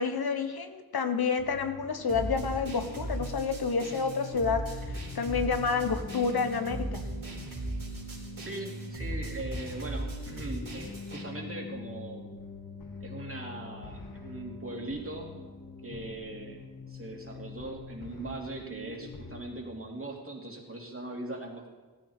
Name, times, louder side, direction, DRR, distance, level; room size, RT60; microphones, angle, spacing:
voice 1, 0.0-7.1, left 5 dB, 85° left, 8 dB, 1.1 m, -29 dB
sound 1, 1.4-19.4, left 2 dB, 60° left, 1.5 m, -44 dB
sound 2, 2.1-11.2, right 1 dB, 60° right, 4.1 m, -38 dB
voice 2, 8.4-12.4 13.0-15.3 15.8-16.6 16.9-21.7, right 2 dB, 35° right, 0 dB, 2.8 m, -40 dB
16.0 x 14.0 x 4.4 m, 1.2 s
wide cardioid pair, 85°, 37 cm